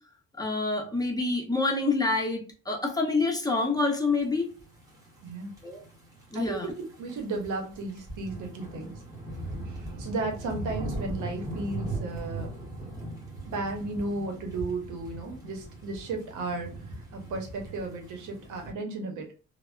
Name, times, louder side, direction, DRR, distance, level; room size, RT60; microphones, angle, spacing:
voice 1, 0.4-4.5 5.6-5.8 6.3-6.7, left 3 dB, 10° left, 2 dB, 0.7 m, -27 dB
sound 1, 4.4-18.7, right 2 dB, 10° right, 1.3 m, -39 dB
voice 2, 5.2-5.5 6.3-9.0 9.7-12.5 13.5-16.7 17.1-19.3, right 3 dB, 80° right, 3 dB, 0.8 m, -34 dB
3.3 x 2.1 x 2.4 m, 0.36 s
cardioid pair, 90°, 30 cm